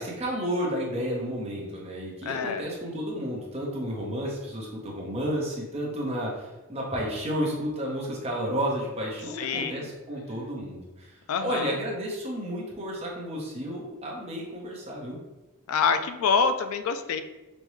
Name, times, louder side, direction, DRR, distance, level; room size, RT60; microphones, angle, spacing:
voice 1, 0.0-15.2, equal, 30° right, -3 dB, 0.9 m, -32 dB
voice 2, 2.2-2.6 9.3-9.9 11.3-11.8 15.7-17.2, left 5 dB, 70° left, 10 dB, 0.3 m, -26 dB
5.3 x 2.2 x 3.1 m, 1.1 s
head